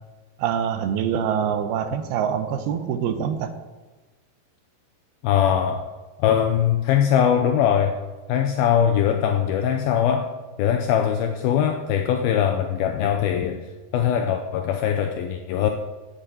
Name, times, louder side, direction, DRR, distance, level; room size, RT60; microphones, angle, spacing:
voice 1, 0.4-3.5, right 8 dB, 75° right, 8 dB, 2.4 m, -25 dB
voice 2, 5.2-5.9 6.2-8.0 8.3-10.3 10.6-13.6 13.9-15.7, left 9 dB, 85° left, 5 dB, 2.2 m, -21 dB
10.5 x 8.2 x 7.7 m, 1.2 s
omnidirectional pair, 5.1 m